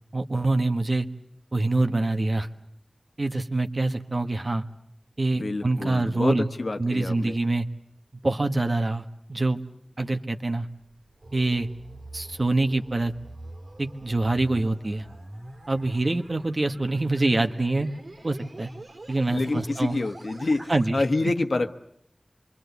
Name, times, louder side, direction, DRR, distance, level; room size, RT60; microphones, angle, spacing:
voice 1, 0.1-1.1 1.5-2.5 3.2-4.6 5.2-6.5 6.8-7.7 8.2-9.0 9.3-9.6 10.0-10.7 11.3-11.7 12.1-13.1 13.8-15.0 15.7-17.9 18.2-18.7 19.1-20.0 20.7-21.0, right 2 dB, 55° right, 7 dB, 1.4 m, -25 dB
voice 2, 5.4-7.4 19.3-21.7, left 2 dB, 85° left, 7 dB, 1.3 m, -27 dB
sound 1, 10.8-20.9, right 1 dB, 80° right, 3.2 m, -45 dB
26.5 x 23.5 x 8.3 m, 0.73 s
wide cardioid pair, 55°, 0 cm